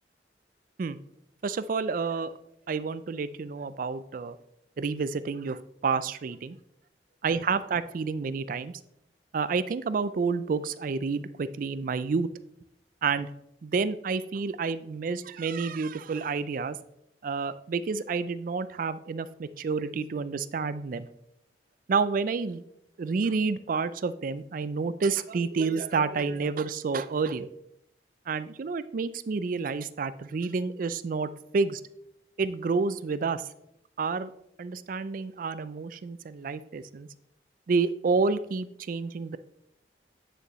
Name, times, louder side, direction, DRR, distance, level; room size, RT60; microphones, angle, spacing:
voice 1, 1.4-2.3 2.7-4.4 4.8-6.6 7.2-8.7 9.3-12.3 13.0-13.3 13.6-16.8 17.2-21.1 21.9-22.6 23.0-27.5 28.3-31.8 32.4-33.5 34.0-34.3 34.6-37.1 37.7-39.4, right 4 dB, 50° right, 15 dB, 0.4 m, -29 dB
9.0 x 6.7 x 3.0 m, 0.78 s
head